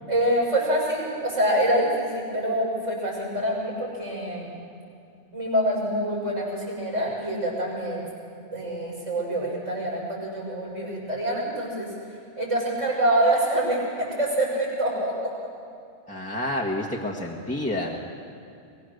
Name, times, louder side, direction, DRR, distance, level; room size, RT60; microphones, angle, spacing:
voice 1, 0.1-4.5 5.3-8.0 8.5-11.9 12.4-15.3, right 1 dB, 80° right, -3 dB, 6.5 m, -26 dB
voice 2, 16.1-18.0, left 1 dB, 5° left, -3 dB, 1.5 m, -29 dB
22.5 x 21.0 x 6.6 m, 2.5 s
omnidirectional pair, 1.2 m